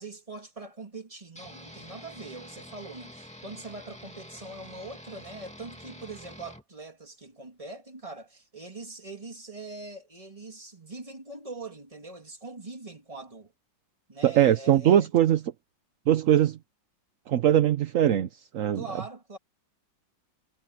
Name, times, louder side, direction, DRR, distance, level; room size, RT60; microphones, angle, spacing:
voice 1, 0.0-13.5 14.1-15.1 18.7-19.4, right 3 dB, 15° right, 2.3 m, -42 dB
sound 1, 1.4-6.6, equal, 5° left, 2.3 m, -47 dB
voice 2, 14.2-15.4 16.1-16.6 17.3-18.3 18.5-19.0, right 11 dB, 60° right, 0.8 m, -21 dB
omnidirectional pair, 2.1 m